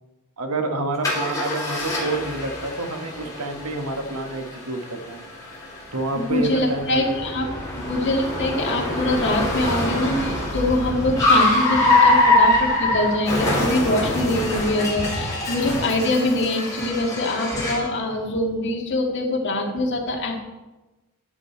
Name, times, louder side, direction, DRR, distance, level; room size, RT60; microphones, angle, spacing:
voice 1, 0.4-5.3 5.9-7.2 7.4-7.6, right 2 dB, 85° right, 5 dB, 1.3 m, -28 dB
Car, 1.0-17.9, left 2 dB, 15° left, 3.4 m, -24 dB
voice 2, 6.3-7.5 7.8-20.4, left 1 dB, 55° left, 0 dB, 1.8 m, -24 dB
11.0 x 7.5 x 4.4 m, 1.1 s
head